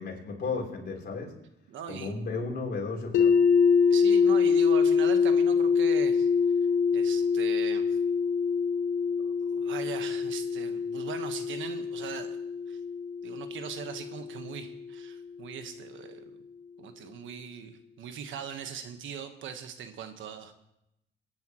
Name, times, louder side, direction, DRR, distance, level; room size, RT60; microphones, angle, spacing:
voice 1, 0.0-1.3 1.9-3.3, left 4 dB, 55° left, -1 dB, 3.7 m, -34 dB
voice 2, 1.7-2.1 3.8-6.3 6.9-8.0 9.2-12.4 12.7-12.8 13.2-16.2 16.8-20.5, right 7 dB, 75° right, 7 dB, 1.4 m, -40 dB
sound 1, 3.1-15.1, left 5 dB, 75° left, 1.1 m, -25 dB
23.0 x 10.5 x 3.1 m, 0.83 s
cardioid pair, 90°, 20 cm